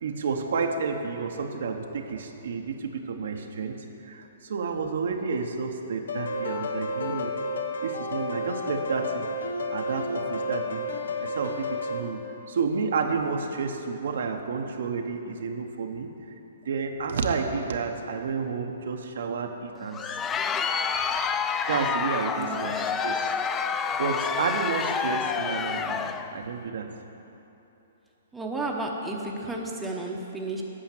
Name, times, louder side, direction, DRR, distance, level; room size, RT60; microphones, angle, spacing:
voice 1, 0.0-7.3 7.8-9.3 9.7-10.9 11.2-12.2 12.5-16.1 16.6-20.0 20.5-20.6 21.7-23.2 24.0-26.9, right 5 dB, 70° right, 4 dB, 0.8 m, -30 dB
sound 1, 6.1-12.0, left 2 dB, 90° left, 0.9 m, -31 dB
Crowd, 19.8-26.3, left 6 dB, 15° left, 0.3 m, -28 dB
voice 2, 28.3-30.6, right 2 dB, 5° right, -1 dB, 0.8 m, -32 dB
8.8 x 5.7 x 7.5 m, 3.0 s
hypercardioid pair, 150°, 0 cm